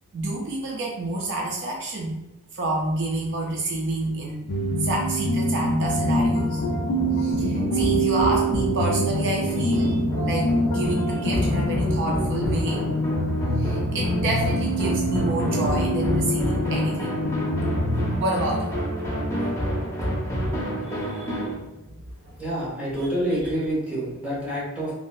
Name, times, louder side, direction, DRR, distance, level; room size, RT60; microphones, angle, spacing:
voice 1, 0.1-2.2 2.5-4.5 4.8-6.6 7.2-12.9 13.6-17.1 18.2-18.8 20.9-22.0 23.0-23.1, right 2 dB, 55° right, -1 dB, 0.4 m, -28 dB
sound 1, 4.5-18.2, equal, 60° left, 0.4 m, -25 dB
sound 2, 5.9-21.5, equal, 15° left, 0.6 m, -28 dB
voice 2, 22.4-24.9, right 1 dB, 5° right, -7 dB, 1.1 m, -27 dB
3.0 x 2.6 x 2.3 m, 0.97 s
head